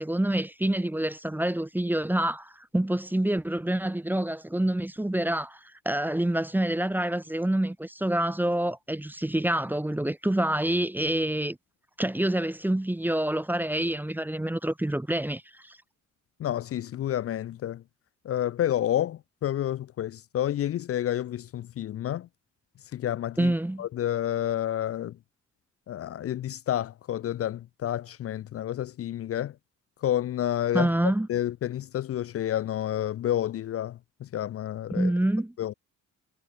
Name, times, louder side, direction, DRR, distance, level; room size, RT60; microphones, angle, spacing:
voice 1, 0.0-5.6 5.8-11.6 12.0-15.8 23.4-23.9 30.7-31.3 34.9-35.5, right 1 dB, 5° right, 0.7 m, -27 dB
voice 2, 16.4-17.8 18.2-22.3 22.9-25.2 25.9-29.6 30.0-30.9 31.3-35.1 35.6-35.7, left 11 dB, 50° left, 0.5 m, -29 dB
cardioid pair, 90°, 30 cm